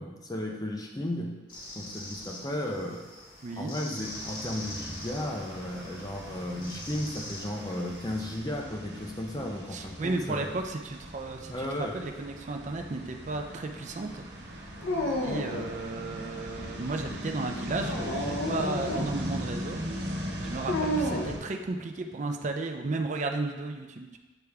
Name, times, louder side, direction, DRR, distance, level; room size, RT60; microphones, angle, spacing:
voice 1, 0.0-1.3 1.7-3.0 3.5-10.5 11.5-12.0, left 1 dB, 20° left, 1 dB, 0.7 m, -34 dB
sound 1, 1.5-8.4, left 1 dB, 50° left, 1.4 m, -44 dB
voice 2, 3.4-3.7 9.7-14.2 15.2-19.8 20.4-24.2, right 3 dB, 40° right, 4 dB, 0.5 m, -34 dB
sound 2, 4.0-21.4, equal, 65° right, 1.0 m, -39 dB
Dog, 14.8-15.8 17.7-19.2 20.7-21.4, left 1 dB, 75° left, 0.7 m, -31 dB
8.0 x 3.4 x 3.5 m, 1.2 s
head